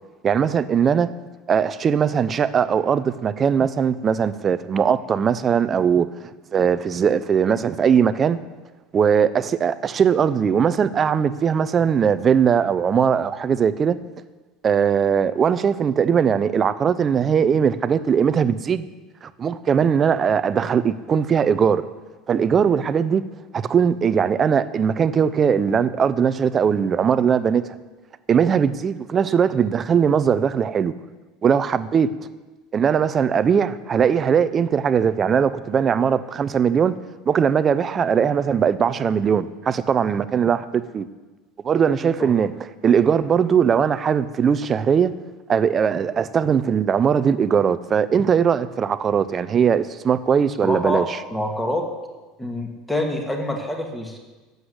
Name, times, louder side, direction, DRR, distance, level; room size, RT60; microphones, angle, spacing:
voice 1, 0.2-1.1 1.5-6.1 6.5-8.4 8.9-14.0 14.6-18.8 19.2-21.9 22.3-23.2 23.5-27.8 28.3-30.9 31.4-32.1 32.7-37.0 37.3-41.1 41.6-42.5 42.8-45.1 45.5-51.2, right 7 dB, 25° right, 14 dB, 0.5 m, -20 dB
voice 2, 50.6-51.0 51.3-51.9 52.4-54.2, left 1 dB, 5° left, 2 dB, 1.7 m, -26 dB
11.5 x 8.1 x 8.1 m, 1.2 s
cardioid pair, 155°, 0 cm